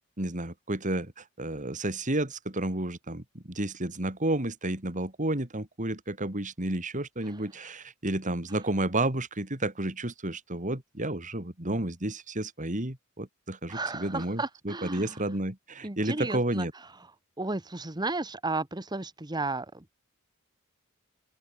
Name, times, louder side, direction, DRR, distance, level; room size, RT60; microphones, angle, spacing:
voice 1, 0.2-16.7, right 1 dB, 35° right, 3.4 m, -31 dB
voice 2, 13.7-15.2 15.8-16.7 17.4-19.9, right 2 dB, 20° right, 1.3 m, -33 dB
open air
head